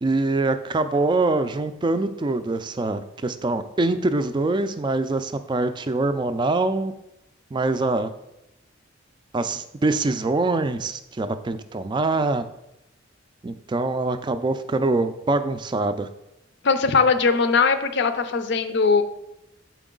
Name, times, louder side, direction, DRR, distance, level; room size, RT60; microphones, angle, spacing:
voice 1, 0.0-6.9 7.5-8.1 9.3-12.4 13.4-16.1, right 2 dB, 25° right, 11 dB, 0.3 m, -24 dB
voice 2, 16.6-19.0, left 4 dB, 60° left, 10 dB, 0.5 m, -20 dB
6.9 x 4.6 x 3.8 m, 0.88 s
head